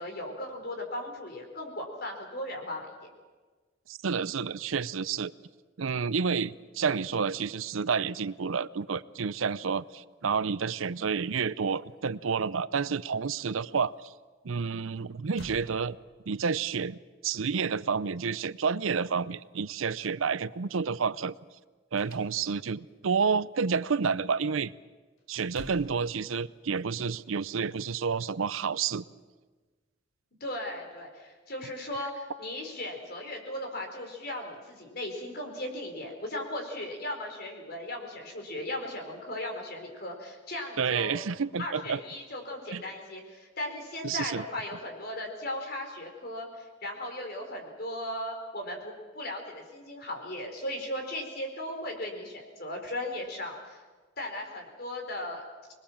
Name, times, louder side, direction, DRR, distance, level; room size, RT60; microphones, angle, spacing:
voice 1, 0.0-2.9 30.4-41.2 41.6-53.8 54.2-55.7, left 1 dB, 50° left, 3 dB, 4.4 m, -37 dB
voice 2, 3.9-5.3 5.8-13.9 14.4-16.0 16.3-17.0 17.2-21.3 21.9-24.7 25.3-29.0 40.8-42.0 42.7-42.8 44.0-44.4, right 5 dB, 90° right, 17 dB, 0.6 m, -29 dB
sound 1, 14.9-15.0 15.3-16.5 21.9-22.8 25.2-26.8, left 1 dB, 85° left, 4.6 m, -49 dB
25.5 x 21.0 x 7.3 m, 1.3 s
head